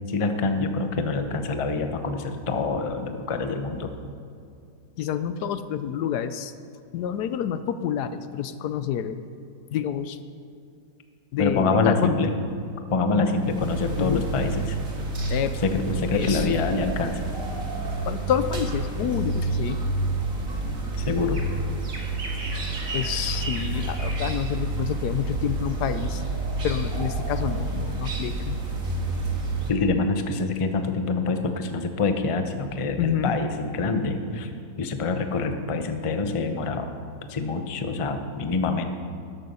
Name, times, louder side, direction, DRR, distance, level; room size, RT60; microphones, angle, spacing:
voice 1, 0.1-3.9 11.4-12.3 12.9-14.8 15.6-17.2 21.0-21.5 29.7-34.5 34.8-36.9 37.3-38.8, left 3 dB, 30° left, 7 dB, 0.5 m, -25 dB
voice 2, 5.0-6.5 6.9-9.2 9.7-10.2 11.3-12.2 13.2-13.3 14.0-14.3 15.3-15.5 16.1-16.5 18.1-19.8 22.9-26.2 26.6-28.5 33.0-33.4, left 9 dB, 75° left, 12 dB, 1.1 m, -28 dB
sound 1, 13.4-29.7, right 2 dB, 50° right, 2.1 m, -29 dB
13.0 x 11.5 x 5.4 m, 2.4 s
omnidirectional pair, 1.8 m